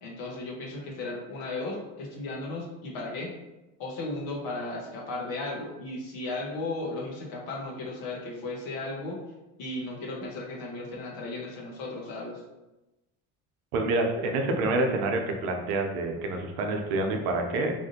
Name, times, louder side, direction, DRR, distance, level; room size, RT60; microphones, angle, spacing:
voice 1, 0.0-3.3 3.8-9.2 9.6-12.4, left 2 dB, 75° left, -2 dB, 1.1 m, -35 dB
voice 2, 13.7-17.7, right 2 dB, 75° right, 3 dB, 0.7 m, -27 dB
3.4 x 2.5 x 2.7 m, 1.0 s
supercardioid pair, 90°, 37 cm